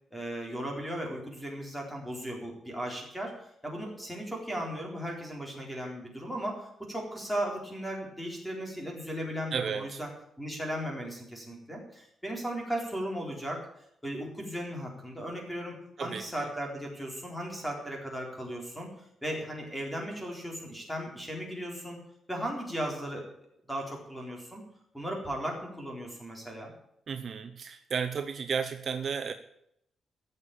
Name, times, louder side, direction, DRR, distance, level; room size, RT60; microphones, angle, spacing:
voice 1, 0.1-10.1 10.4-13.6 14.0-18.9 19.2-22.0 22.3-23.3 23.7-24.6 24.9-26.7, equal, 5° left, 0 dB, 3.9 m, -36 dB
voice 2, 9.5-10.0 16.0-16.5 27.1-29.3, right 6 dB, 45° right, 7 dB, 0.8 m, -33 dB
15.0 x 6.7 x 8.6 m, 0.75 s
wide cardioid pair, 150°, 0 cm